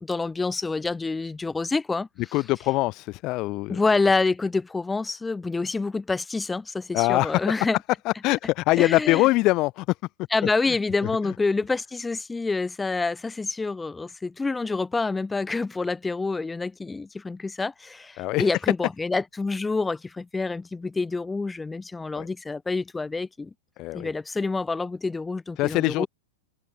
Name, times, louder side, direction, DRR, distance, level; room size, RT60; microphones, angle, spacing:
voice 1, 0.0-2.1 3.7-7.8 8.8-9.3 10.3-23.5 23.9-26.1, left 3 dB, 5° left, 2.2 m, -27 dB
voice 2, 2.3-3.8 6.9-7.3 8.1-9.9 18.2-18.5 22.2-22.3 23.8-24.1 25.6-26.1, left 20 dB, 30° left, 2.1 m, -23 dB
supercardioid pair, 160°, 0 cm